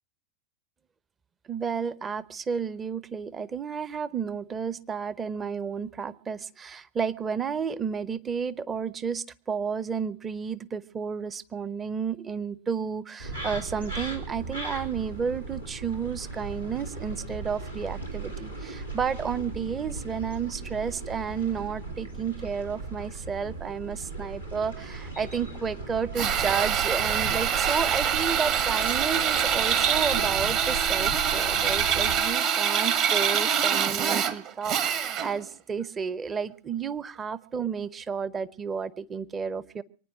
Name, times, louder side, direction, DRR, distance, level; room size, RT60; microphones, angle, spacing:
voice 1, 1.5-39.8, right 6 dB, 20° right, 18 dB, 0.7 m, -32 dB
sound 1, 13.2-32.2, right 3 dB, 90° right, 2.9 m, -37 dB
Drill, 26.2-35.4, right 8 dB, 40° right, 1.5 m, -25 dB
24.0 x 9.5 x 6.3 m, 0.42 s
figure-of-eight pair, 90°, 0 cm